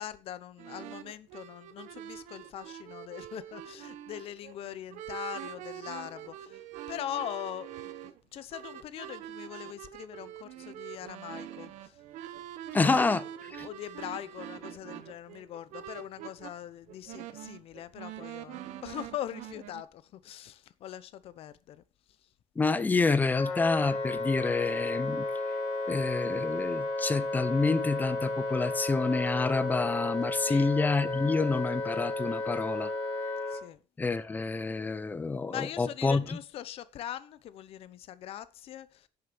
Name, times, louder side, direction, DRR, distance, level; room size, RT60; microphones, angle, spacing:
voice 1, 0.0-6.6 6.9-11.9 12.8-13.2 13.5-21.8 30.4-30.7 33.5-33.8 35.5-39.1, left 11 dB, 50° left, 0.8 m, -41 dB
sound 1, 0.6-16.5 16.9-19.8, right 11 dB, 80° right, 1.3 m, -44 dB
voice 2, 12.7-13.2 13.6-13.7 22.6-25.2 25.9-32.9 34.0-36.4, left 4 dB, 15° left, 0.7 m, -28 dB
Wind instrument woodwind instrument, 23.3-33.6, left 2 dB, 80° left, 3.0 m, -33 dB
11.0 x 6.6 x 7.0 m
cardioid pair, 170°, 12 cm